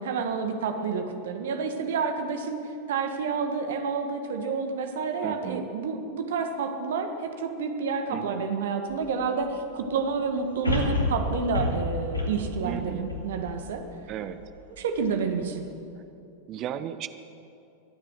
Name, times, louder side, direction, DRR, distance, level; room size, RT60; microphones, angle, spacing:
voice 1, 0.0-2.6 2.9-13.8 14.7-15.7, right 5 dB, 60° right, 6 dB, 1.5 m, -29 dB
voice 2, 5.2-5.7 8.1-8.4 12.6-13.1 14.1-14.4 16.5-17.1, right 10 dB, 35° right, 12 dB, 0.7 m, -34 dB
sound 1, 8.9-9.0 10.6-14.0 14.5-14.6, left 2 dB, 80° left, 2.6 m, -29 dB
24.0 x 9.1 x 6.2 m, 2.7 s
figure-of-eight pair, 90°, 0 cm